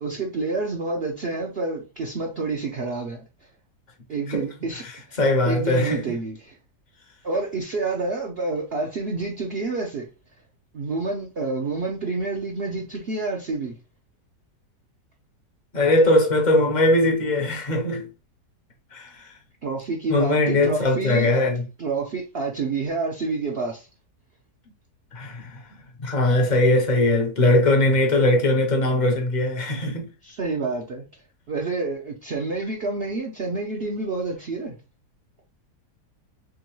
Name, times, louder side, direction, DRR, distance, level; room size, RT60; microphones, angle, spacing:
voice 1, 0.0-3.5 4.1-4.8 5.1-5.2 5.4-6.6 7.2-10.1 10.7-13.8 19.6-21.3 21.8-23.9 30.2-34.8, right 3 dB, 55° right, 0.7 m, -28 dB
voice 2, 5.2-6.0 15.7-18.1 18.9-19.3 20.1-21.6 25.1-25.6 26.0-30.1, left 1 dB, 40° left, 0.7 m, -20 dB
3.8 x 3.1 x 3.0 m
omnidirectional pair, 1.8 m